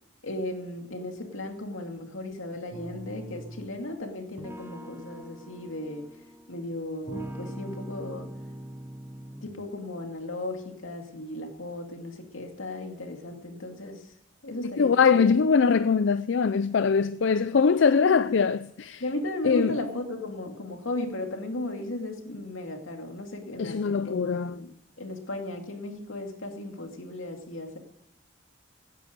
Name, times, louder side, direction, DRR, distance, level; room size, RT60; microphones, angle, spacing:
voice 1, 0.2-6.1 6.5-8.3 9.4-14.1 14.4-15.4 19.0-27.8, left 1 dB, 90° left, 2.4 m, -36 dB
sound 1, 2.7-3.8 4.4-6.6 7.1-9.6, right 1 dB, 10° right, 0.6 m, -42 dB
voice 2, 14.6-19.0 19.4-19.8 23.6-24.6, left 5 dB, 70° left, 0.4 m, -22 dB
17.0 x 10.0 x 5.3 m
head